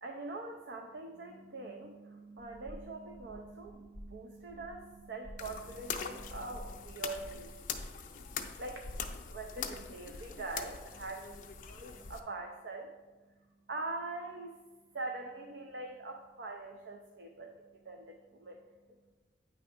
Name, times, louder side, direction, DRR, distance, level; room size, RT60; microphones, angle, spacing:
voice 1, 0.0-7.6 8.6-8.8 9.3-11.3 11.7-12.9 13.7-14.6 14.9-19.0, right 2 dB, 65° right, 3 dB, 0.5 m, -43 dB
sound 1, 2.4-10.1, equal, ahead, 0.7 m, -53 dB
sound 2, 5.4-12.2, left 6 dB, 50° left, 0.5 m, -43 dB
9.0 x 3.4 x 5.0 m, 1.3 s
head